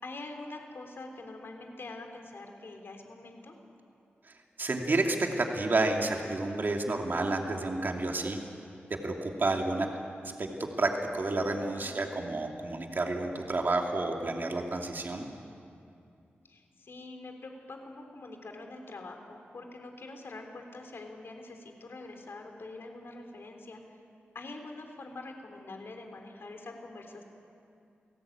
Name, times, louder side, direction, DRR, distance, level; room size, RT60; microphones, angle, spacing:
voice 1, 0.0-3.6 11.5-12.0 16.5-24.0 24.3-27.2, left 2 dB, 65° left, 4 dB, 3.5 m, -45 dB
voice 2, 4.6-8.4 8.9-9.9 10.2-10.5 10.8-15.3, right 2 dB, 50° right, 2 dB, 2.5 m, -30 dB
28.5 x 18.0 x 8.7 m, 2.5 s
cardioid pair, 65°, 4 cm